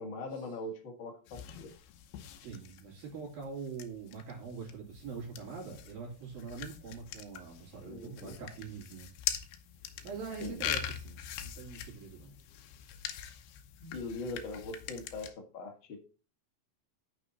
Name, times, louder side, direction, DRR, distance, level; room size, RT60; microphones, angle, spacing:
voice 1, 0.0-1.7 7.8-8.4 10.4-10.6 13.8-16.0, left 2 dB, 45° left, 2 dB, 1.6 m, -41 dB
sound 1, 1.3-15.3, left 10 dB, 75° left, 2.6 m, -43 dB
voice 2, 2.4-9.1 10.0-12.3, right 5 dB, 55° right, -3 dB, 4.6 m, -43 dB
9.8 x 6.2 x 4.1 m, 0.36 s
omnidirectional pair, 5.1 m